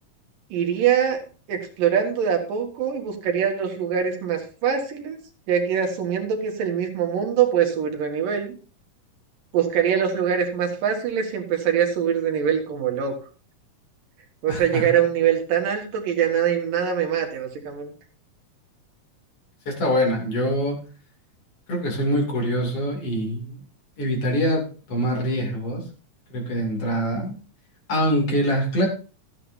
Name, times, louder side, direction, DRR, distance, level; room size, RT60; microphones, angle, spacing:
voice 1, 0.5-1.2 1.5-5.2 5.5-8.6 9.5-13.1 14.4-17.9, right 8 dB, 90° right, 3 dB, 3.5 m, -23 dB
voice 2, 14.5-14.9 19.7-20.8 21.7-23.6 24.0-25.8 26.3-27.4 27.9-28.9, equal, 45° left, 0 dB, 3.5 m, -24 dB
14.5 x 9.8 x 2.7 m, 0.36 s
omnidirectional pair, 3.8 m